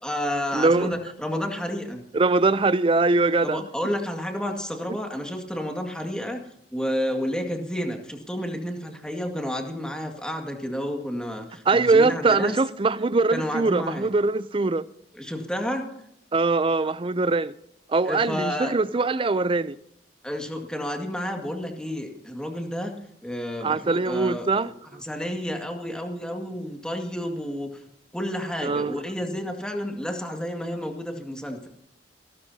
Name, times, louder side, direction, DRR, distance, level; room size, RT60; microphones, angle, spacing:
voice 1, 0.0-2.0 3.4-6.5 6.7-12.6 13.3-14.1 15.1-15.9 18.1-18.7 20.2-23.0 23.2-24.7 25.0-27.9 28.1-31.7, equal, 5° left, 2.0 m, -30 dB
voice 2, 0.5-0.9 2.1-3.6 11.7-14.8 16.3-17.5 17.9-19.8 23.6-25.0 28.6-29.0, right 3 dB, 30° right, 0.5 m, -22 dB
29.0 x 13.5 x 2.8 m
head